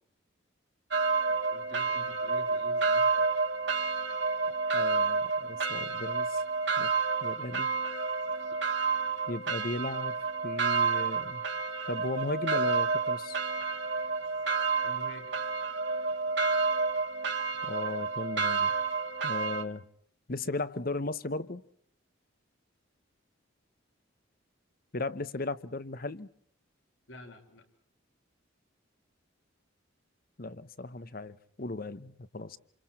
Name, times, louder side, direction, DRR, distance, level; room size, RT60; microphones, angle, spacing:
sound 1, 0.9-19.6, right 4 dB, 60° right, 1.9 m, -30 dB
voice 1, 1.3-3.3 14.8-15.3 27.1-27.7, left 1 dB, 65° left, 5 dB, 4.9 m, -48 dB
voice 2, 4.7-6.4 6.8-6.9 7.2-7.7 9.3-10.2 10.4-11.4 11.9-13.4 17.6-18.7 19.2-19.8 20.3-21.6 24.9-26.3 30.4-32.6, left 2 dB, 45° left, 15 dB, 1.0 m, -36 dB
28.5 x 28.0 x 4.4 m, 0.63 s
head